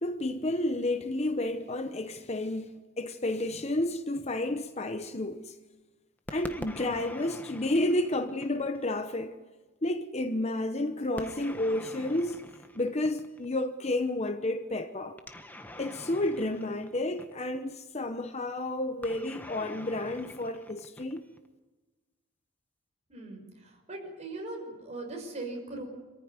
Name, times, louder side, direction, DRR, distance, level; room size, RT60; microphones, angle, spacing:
voice 1, 0.0-5.6 6.3-9.4 9.8-12.4 12.7-15.2 15.8-21.3, left 1 dB, 30° left, 0.9 m, -31 dB
sound 1, 6.3-8.9 11.2-13.5 15.2-17.6 19.0-21.5, left 1 dB, 10° left, 1.3 m, -45 dB
voice 2, 23.1-25.8, right 2 dB, 30° right, 6.0 m, -40 dB
26.5 x 15.0 x 9.6 m
head